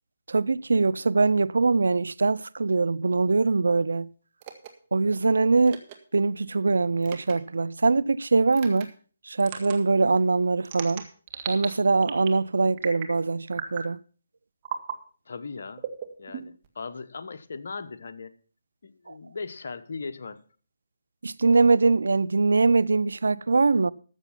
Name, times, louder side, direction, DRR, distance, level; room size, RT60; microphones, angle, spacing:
voice 1, 0.3-4.1 4.9-5.8 6.1-8.9 9.3-11.1 11.5-14.0 19.1-19.2 21.2-23.9, right 3 dB, 75° right, 0.5 m, -22 dB
sound 1, 4.4-4.7 5.7-6.0 7.0-7.3 8.5-8.9 9.4-9.8 10.6-11.7 12.0-12.4 12.8-13.2 13.5-13.9 14.6-15.0 15.8-16.7, right 8 dB, 30° right, 1.7 m, -36 dB
voice 2, 15.3-15.9 16.2-18.3 18.8-20.4, left 4 dB, 60° left, 1.0 m, -38 dB
13.5 x 7.2 x 5.7 m
figure-of-eight pair, 150°, 0 cm